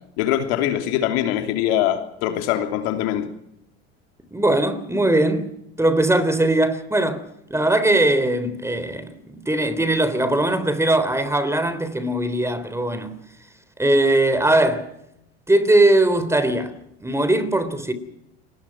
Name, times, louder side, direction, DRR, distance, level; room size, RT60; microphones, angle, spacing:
voice 1, 0.2-3.3, left 11 dB, 70° left, 3.1 m, -23 dB
voice 2, 4.3-5.5 5.8-7.2 7.5-13.1 13.8-14.9 15.5-17.9, right 1 dB, 10° right, 3.5 m, -20 dB
28.5 x 20.0 x 6.1 m
hypercardioid pair, 90°, 32 cm